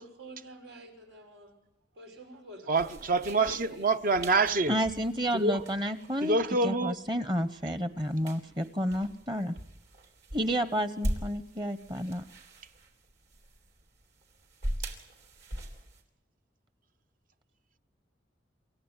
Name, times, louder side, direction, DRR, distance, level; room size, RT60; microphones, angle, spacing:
voice 1, 0.0-1.6 1.9-3.9, right 1 dB, 90° right, 6.2 m, -48 dB
voice 2, 2.7-4.8 5.3-5.6 6.2-7.0, right 3 dB, 50° right, 0.8 m, -26 dB
sound 1, 2.8-16.0, equal, 65° right, 3.7 m, -41 dB
voice 3, 4.7-6.4 6.6-9.6 10.3-12.2, equal, 25° right, 1.1 m, -30 dB
27.5 x 15.0 x 9.8 m
head